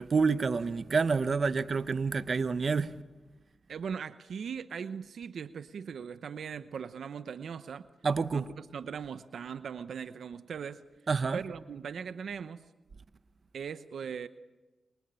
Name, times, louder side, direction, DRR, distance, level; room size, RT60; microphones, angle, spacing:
voice 1, 0.0-3.0 8.0-8.5 11.1-11.4, right 4 dB, 60° right, 1.0 m, -28 dB
voice 2, 3.7-7.9 8.3-10.8 11.3-12.6 13.5-14.3, right 7 dB, 85° right, 0.8 m, -39 dB
27.5 x 24.0 x 8.9 m
cardioid pair, 55°, 0 cm